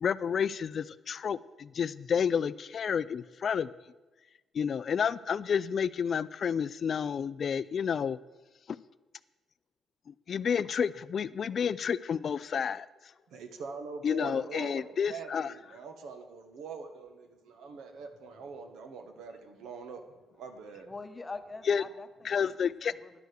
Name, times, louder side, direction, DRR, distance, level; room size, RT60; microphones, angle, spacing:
voice 1, 0.0-3.7 4.5-8.2 8.7-8.8 10.3-12.9 14.0-15.5 21.7-21.8 22.2-22.9, left 7 dB, 50° left, 17 dB, 0.3 m, -30 dB
voice 2, 13.3-20.1 20.4-20.9, right 5 dB, 80° right, 7 dB, 1.3 m, -44 dB
voice 3, 20.8-22.5 22.8-23.2, left 3 dB, 20° left, 9 dB, 1.0 m, -44 dB
10.5 x 6.3 x 8.2 m, 1.2 s
cardioid pair, 90°, 0 cm